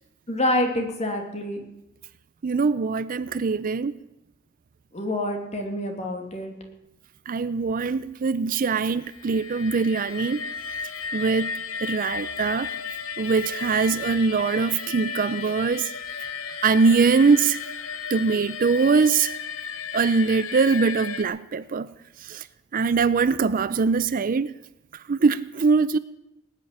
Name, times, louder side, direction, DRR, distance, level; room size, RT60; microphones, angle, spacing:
voice 1, 0.3-1.6 4.9-6.5, left 1 dB, 35° left, 2.6 m, -27 dB
voice 2, 2.4-3.9 7.3-10.4 11.1-11.5 11.8-12.7 13.2-15.9 16.6-17.6 18.1-19.4 19.9-21.9 22.2-22.5 22.7-24.6 24.9-26.0, right 4 dB, 40° right, 0.5 m, -22 dB
sound 1, 9.0-21.2, left 6 dB, 80° left, 1.1 m, -34 dB
19.0 x 6.8 x 10.0 m
head